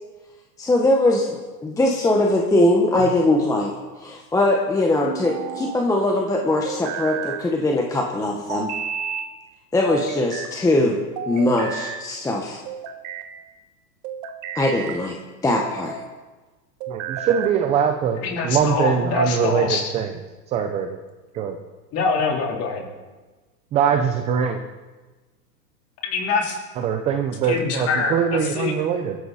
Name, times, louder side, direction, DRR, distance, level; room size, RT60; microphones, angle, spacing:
voice 1, 0.6-3.7 4.0-8.7 9.7-11.0 11.3-12.6 14.5-15.1 15.4-16.0, left 1 dB, 5° left, 0 dB, 1.2 m, -21 dB
sound 1, 3.0-3.7 5.0-5.8 6.6-7.4 8.5-9.3 9.9-10.5 11.2-12.0 12.7-13.3 14.0-15.0 15.5-16.0 16.8-17.6, right 8 dB, 35° right, 1.8 m, -32 dB
voice 2, 16.9-20.1 20.5-21.0 21.3-21.6 23.7-24.6 26.8-29.2, right 7 dB, 15° right, 6 dB, 0.5 m, -22 dB
voice 3, 18.2-19.9 21.9-22.9 26.0-26.6 27.5-28.7, left 4 dB, 30° left, 0 dB, 3.7 m, -24 dB
22.0 x 13.5 x 4.2 m, 1.3 s
hypercardioid pair, 145°, 50 cm